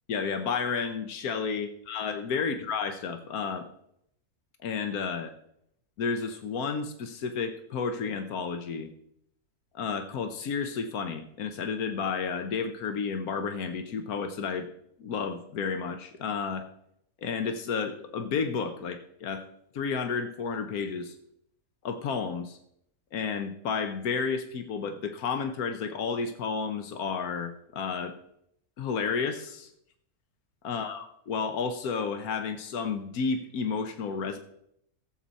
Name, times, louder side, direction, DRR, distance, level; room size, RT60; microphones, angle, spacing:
voice 1, 0.1-3.7 4.6-5.3 6.0-8.9 9.7-14.7 15.0-16.7 17.2-19.5 19.7-21.2 21.8-22.6 23.1-28.2 28.8-29.7 30.6-34.4, left 5 dB, 85° left, 8 dB, 1.3 m, -31 dB
16.5 x 7.6 x 4.1 m, 0.73 s
omnidirectional pair, 1.5 m